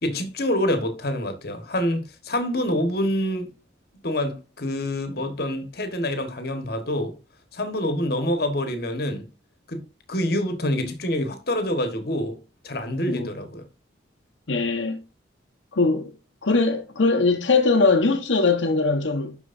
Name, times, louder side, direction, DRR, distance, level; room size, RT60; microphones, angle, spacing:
voice 1, 0.0-3.5 4.0-7.1 7.5-9.3 9.7-12.4 12.6-13.6, left 1 dB, 50° left, 1.4 m, -26 dB
voice 2, 14.5-15.0 15.7-16.1 16.4-19.4, left 3 dB, 75° left, 1.1 m, -21 dB
11.5 x 4.6 x 2.6 m
head